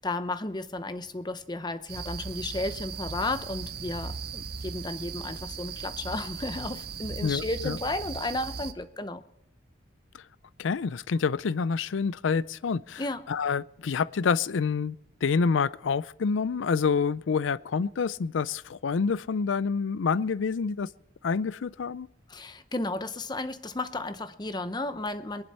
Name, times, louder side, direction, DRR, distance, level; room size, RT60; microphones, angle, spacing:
voice 1, 0.0-9.2 13.0-13.3 22.3-25.4, left 2 dB, 25° left, 11 dB, 0.7 m, -33 dB
sound 1, 1.9-8.7, right 5 dB, 55° right, 0.7 m, -38 dB
voice 2, 7.2-7.8 10.6-13.0 13.3-15.0 15.2-20.9 21.2-22.1, left 5 dB, 85° left, 20 dB, 0.5 m, -27 dB
22.5 x 11.0 x 4.2 m, 0.83 s
head